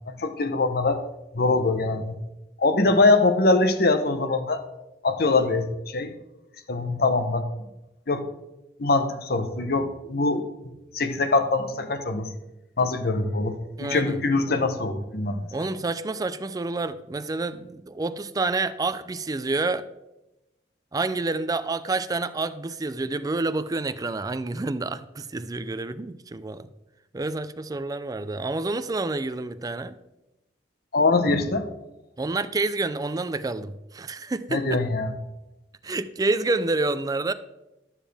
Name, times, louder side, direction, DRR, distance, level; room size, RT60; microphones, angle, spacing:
voice 1, 0.1-1.0 1.3-2.2 2.6-4.6 5.0-6.2 6.7-7.5 8.1-8.3 8.8-10.5 10.9-12.3 12.8-15.4 30.9-31.7 34.5-35.1, left 3 dB, 60° left, 0.9 m, -23 dB
voice 2, 13.8-14.2 14.5-14.6 15.5-19.8 20.9-26.7 27.1-30.0 32.2-34.8 35.8-37.3, right 3 dB, 20° right, 0.4 m, -28 dB
12.0 x 7.2 x 3.4 m
head